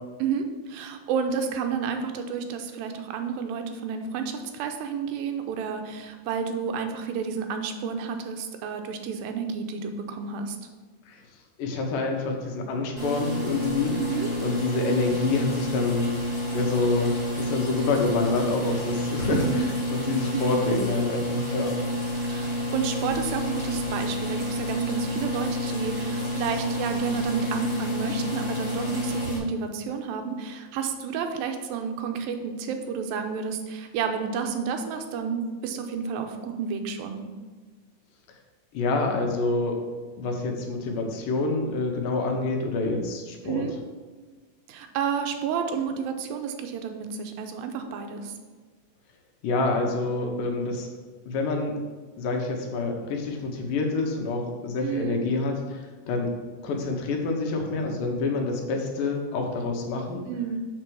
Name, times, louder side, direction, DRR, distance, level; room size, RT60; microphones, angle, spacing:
voice 1, 0.2-10.6 14.0-14.3 19.3-19.7 20.3-20.6 22.2-37.2 43.5-43.7 44.7-48.3 54.8-55.2 60.3-60.6, right 6 dB, 85° right, 6 dB, 2.5 m, -30 dB
voice 2, 11.6-14.0 14.4-16.1 16.5-21.7 38.7-39.8 40.2-43.7 49.4-50.9 51.3-51.7 52.2-56.3 56.6-60.2, left 3 dB, 75° left, 2 dB, 2.5 m, -27 dB
sound 1, 13.0-29.4, left 1 dB, 10° right, 1.7 m, -29 dB
7.3 x 4.5 x 6.2 m, 1.3 s
omnidirectional pair, 4.1 m